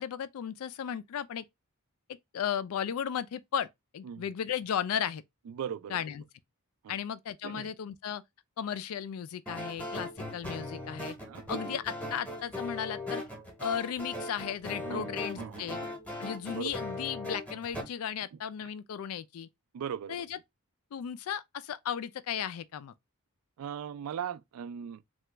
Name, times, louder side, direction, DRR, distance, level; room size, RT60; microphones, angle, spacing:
voice 1, 0.0-1.4 2.3-3.7 3.9-5.2 5.9-6.2 6.9-8.2 8.6-11.2 11.5-13.2 13.6-15.8 16.2-19.5 20.1-20.4 20.9-22.9, left 8 dB, 70° left, 0.3 m, -35 dB
voice 2, 5.5-6.0 6.8-7.0 7.4-7.7 11.3-11.8 14.8-15.9 16.5-16.7 18.6-18.7 19.7-20.3 23.6-25.0, right 8 dB, 75° right, 0.3 m, -39 dB
sound 1, 9.5-17.8, left 1 dB, 5° left, 0.8 m, -39 dB
2.9 x 2.3 x 3.2 m
head